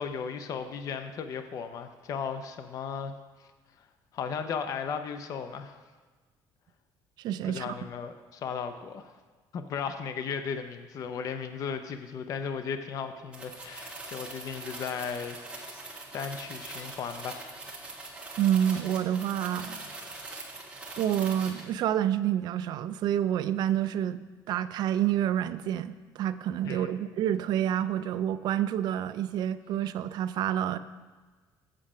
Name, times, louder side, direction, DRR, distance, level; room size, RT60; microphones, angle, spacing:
voice 1, 0.0-3.1 4.1-5.8 7.4-9.2 9.5-15.8 16.1-17.5 26.6-26.9, left 6 dB, 45° left, 8 dB, 0.5 m, -36 dB
voice 2, 7.2-7.8 18.4-19.8 21.0-24.2 24.5-30.8, right 10 dB, 55° right, 13 dB, 0.4 m, -28 dB
sound 1, 13.3-21.7, right 2 dB, 15° right, 1.2 m, -42 dB
7.4 x 7.2 x 4.9 m, 1.3 s
cardioid pair, 160°, 8 cm